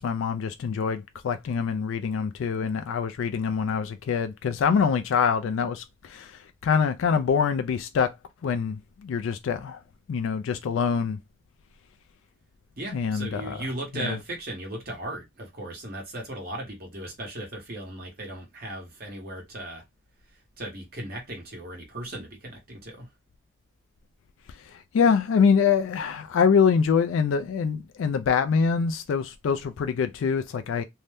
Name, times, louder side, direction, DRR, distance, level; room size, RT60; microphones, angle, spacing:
voice 1, 0.0-5.8 6.1-6.3 6.6-8.1 8.4-9.8 10.1-11.2 12.9-13.6 14.0-14.2 24.9-30.8, left 6 dB, 85° left, 0.3 m, -24 dB
voice 2, 12.8-19.8 20.6-23.1, right 1 dB, 50° right, 1.0 m, -37 dB
2.7 x 2.1 x 3.3 m
head